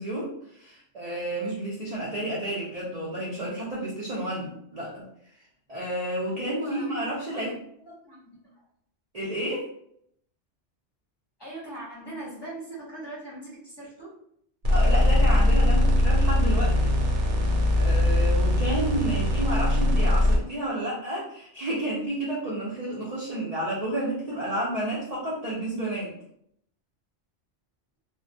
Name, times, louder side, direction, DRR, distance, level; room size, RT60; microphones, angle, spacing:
voice 1, 0.0-5.0 5.7-7.5 9.1-9.7 14.7-17.0 17.7-26.1, right 1 dB, 45° right, -6 dB, 0.5 m, -31 dB
voice 2, 6.3-7.4 7.8-8.6 11.4-14.1, right 2 dB, 25° left, -8 dB, 0.8 m, -41 dB
sound 1, 14.6-20.4, left 1 dB, 80° right, 0.9 m, -21 dB
2.2 x 2.1 x 2.6 m, 0.69 s
omnidirectional pair, 1.2 m